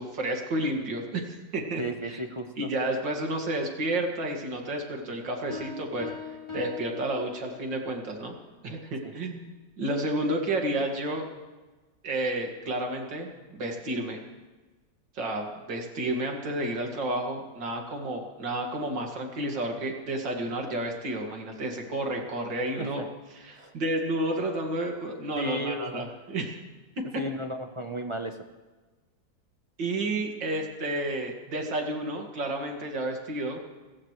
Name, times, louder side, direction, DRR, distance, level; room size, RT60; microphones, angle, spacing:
voice 1, 0.0-2.2 2.6-8.4 8.6-9.5 9.8-11.2 12.0-14.2 15.1-23.0 23.3-26.5 27.0-27.1 29.8-33.6, right 1 dB, 90° right, 2 dB, 2.8 m, -31 dB
voice 2, 1.8-2.7 9.0-9.1 22.8-23.1 23.5-23.7 25.4-26.1 27.1-28.4, right 1 dB, 30° right, 5 dB, 0.5 m, -34 dB
sound 1, 5.5-7.9, left 5 dB, 15° left, 4.1 m, -41 dB
29.5 x 15.0 x 3.3 m, 1.2 s
omnidirectional pair, 1.9 m